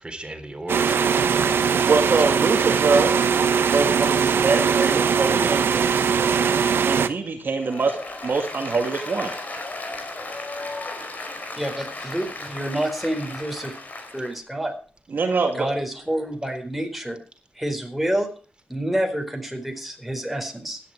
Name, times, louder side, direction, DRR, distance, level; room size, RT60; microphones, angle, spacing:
voice 1, 0.0-1.8 2.4-2.8, right 2 dB, 25° right, 6 dB, 3.8 m, -36 dB
sound 1, 0.7-7.1, right 6 dB, 85° right, 1.0 m, -20 dB
voice 2, 1.9-3.1 3.7-6.0 6.8-9.3 15.1-15.7, right 4 dB, 65° right, 3 dB, 2.3 m, -24 dB
Applause, 7.6-14.3, left 2 dB, 45° left, 4.7 m, -35 dB
voice 3, 11.6-13.7 14.1-14.7 15.5-17.2 17.6-18.3 18.7-20.8, right 1 dB, 5° right, 3 dB, 4.6 m, -28 dB
16.5 x 11.0 x 4.7 m, 0.39 s
cardioid pair, 70°, 4 cm